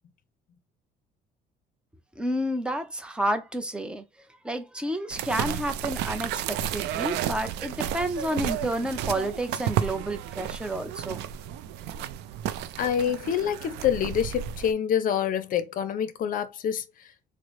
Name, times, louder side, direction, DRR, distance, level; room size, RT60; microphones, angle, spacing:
voice 1, 2.2-11.2, right 1 dB, 5° right, 0.6 m, -30 dB
sound 1, 5.1-14.7, right 10 dB, 85° right, 0.4 m, -32 dB
voice 2, 12.8-16.8, left 9 dB, 55° left, 0.6 m, -26 dB
3.8 x 2.1 x 3.1 m
cardioid pair, 110°, 17 cm